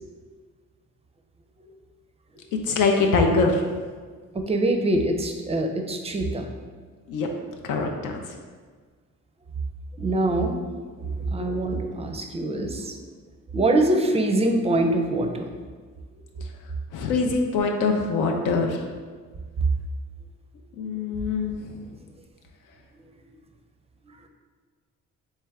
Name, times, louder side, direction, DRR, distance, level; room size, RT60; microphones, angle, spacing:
voice 1, 2.7-3.6 7.1-7.3 7.7-8.1 16.9-18.8 20.8-21.5, left 4 dB, 85° left, 2 dB, 0.5 m, -23 dB
voice 2, 4.3-6.5 10.0-10.6 11.3-13.0 13.5-15.5, right 1 dB, 20° right, 4 dB, 0.4 m, -24 dB
3.2 x 3.2 x 3.5 m, 1.5 s
cardioid pair, 90°, 30 cm